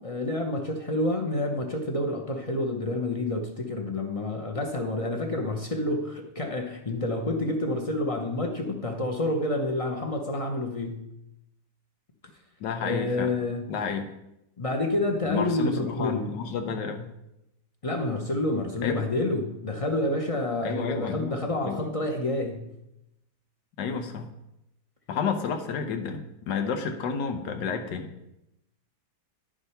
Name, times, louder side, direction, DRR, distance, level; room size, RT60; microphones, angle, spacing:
voice 1, 0.0-11.1 12.8-13.7 14.6-16.4 17.8-22.7, left 2 dB, 35° left, 2 dB, 0.6 m, -28 dB
voice 2, 12.6-13.4 13.7-14.1 15.2-17.1 18.8-19.0 20.6-21.4 21.6-21.9 23.8-24.3 25.1-28.1, left 6 dB, 85° left, 6 dB, 1.5 m, -31 dB
10.5 x 4.9 x 5.6 m, 0.86 s
omnidirectional pair, 1.9 m